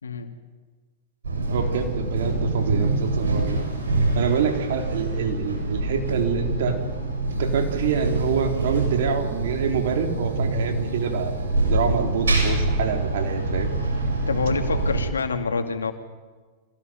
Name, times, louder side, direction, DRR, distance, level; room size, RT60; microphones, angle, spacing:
sound 1, 1.2-15.1, right 2 dB, 85° right, 6.9 m, -26 dB
voice 1, 1.5-3.6 4.2-6.8 7.4-11.3 11.7-13.7, right 6 dB, 70° right, 4 dB, 3.7 m, -26 dB
voice 2, 14.3-15.9, left 4 dB, 90° left, 6 dB, 2.5 m, -26 dB
25.5 x 17.5 x 9.4 m, 1.4 s
hypercardioid pair, 105°, 0 cm